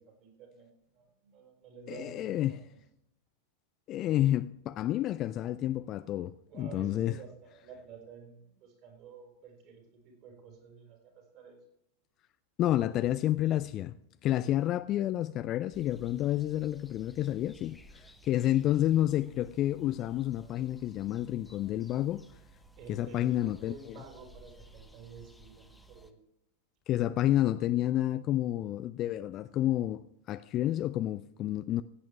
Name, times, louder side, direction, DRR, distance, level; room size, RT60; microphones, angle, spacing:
voice 1, 0.0-2.7 6.5-11.6 22.8-26.2, right 6 dB, 40° right, 4.1 m, -50 dB
voice 2, 1.9-2.6 3.9-7.2 12.6-13.9 14.2-22.2 22.9-23.7 26.9-31.8, left 13 dB, 35° left, 0.4 m, -30 dB
sound 1, 15.7-26.1, right 2 dB, 5° left, 1.0 m, -57 dB
16.5 x 8.5 x 3.4 m
figure-of-eight pair, 90°, 0 cm